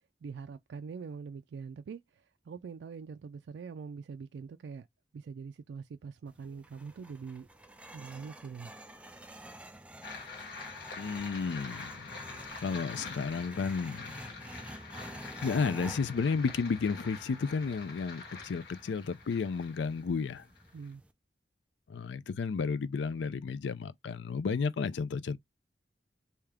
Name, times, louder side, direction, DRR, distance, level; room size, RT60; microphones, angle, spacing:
voice 1, 0.2-4.9 5.1-7.5 7.9-8.7 20.7-21.0, right 5 dB, 70° right, 0.3 m, -43 dB
sound 1, 6.3-21.1, right 1 dB, 5° right, 0.4 m, -49 dB
sound 2, 10.0-20.9, left 4 dB, 65° left, 1.5 m, -46 dB
voice 2, 11.0-12.3 12.6-14.2 15.0-20.5 21.9-25.4, left 5 dB, 85° left, 0.4 m, -33 dB
3.4 x 2.7 x 3.5 m
head